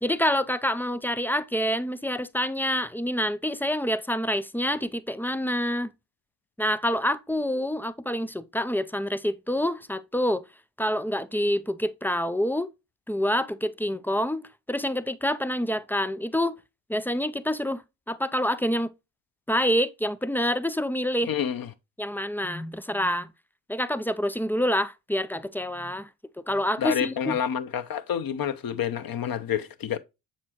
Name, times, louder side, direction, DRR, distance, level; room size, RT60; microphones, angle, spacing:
voice 1, 0.0-5.9 6.6-10.5 10.8-12.7 13.1-16.6 16.9-17.8 18.1-18.9 19.5-21.3 22.0-23.3 23.7-26.1 26.5-27.4, equal, 5° left, 0.3 m, -27 dB
voice 2, 21.3-21.7 26.8-30.0, left 8 dB, 45° left, 0.9 m, -28 dB
7.4 x 4.4 x 3.0 m
hypercardioid pair, 50°, 49 cm